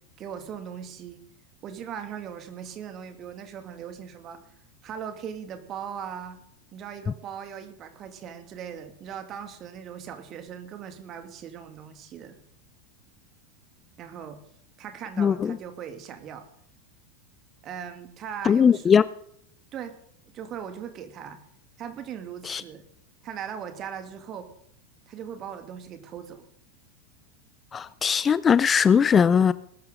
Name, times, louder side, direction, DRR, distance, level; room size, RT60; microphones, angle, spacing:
voice 1, 0.2-1.2 1.6-4.5 4.8-6.4 6.7-12.4 14.0-14.4 14.8-16.5 17.6-18.9 19.7-19.9 20.3-21.4 21.8-22.8 23.2-24.5 25.1-26.5, right 8 dB, 35° right, 8 dB, 2.2 m, -39 dB
voice 2, 15.2-15.6 18.4-19.0 22.5-22.6 27.7-29.5, left 7 dB, 25° left, 18 dB, 0.5 m, -20 dB
20.5 x 11.5 x 3.8 m, 0.68 s
figure-of-eight pair, 85°, 0 cm